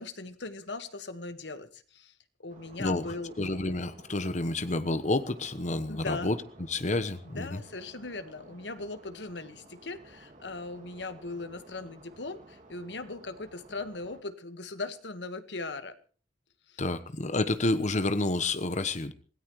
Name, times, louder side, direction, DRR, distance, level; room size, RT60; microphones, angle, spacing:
voice 1, 0.0-2.1 2.4-3.3 5.9-6.3 7.2-16.0 16.7-16.8, left 3 dB, 80° left, 1.6 m, -39 dB
sound 1, 2.5-14.2, right 1 dB, 45° right, 2.5 m, -54 dB
voice 2, 2.8-6.4 6.7-7.6 16.8-19.1, left 2 dB, 45° left, 1.1 m, -29 dB
26.0 x 17.0 x 3.2 m
head